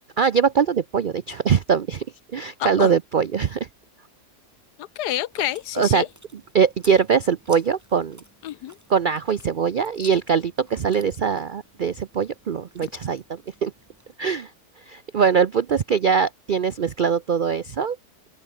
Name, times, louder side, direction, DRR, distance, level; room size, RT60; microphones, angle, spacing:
voice 1, 0.2-2.0 2.3-3.7 5.8-6.0 6.5-8.2 8.9-13.7 14.2-14.5 14.9-18.0, right 6 dB, 75° right, 0.4 m, -22 dB
voice 2, 2.6-3.0 4.8-6.1 8.4-8.8, left 13 dB, 85° left, 1.3 m, -28 dB
Chewing mastication, 5.3-14.2, right 1 dB, 10° right, 3.9 m, -52 dB
open air
omnidirectional pair, 1.7 m